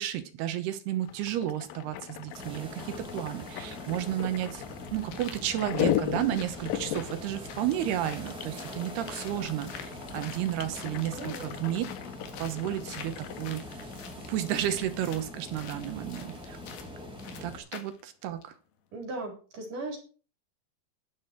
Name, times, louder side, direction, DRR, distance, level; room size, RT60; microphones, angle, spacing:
voice 1, 0.0-4.6 4.9-11.9 12.4-13.9 14.3-16.6 17.4-18.6, right 12 dB, 70° right, 10 dB, 2.8 m, -32 dB
sound 1, 1.0-13.5, left 12 dB, 85° left, 2.0 m, -37 dB
sound 2, 2.3-17.6, left 1 dB, ahead, 4.6 m, -43 dB
sound 3, 4.4-18.0 18.4-18.5, left 8 dB, 60° left, 3.2 m, -48 dB
voice 2, 11.1-11.5 18.9-20.0, right 2 dB, 45° right, 1 dB, 5.3 m, -37 dB
11.5 x 11.0 x 4.5 m, 0.37 s
omnidirectional pair, 5.3 m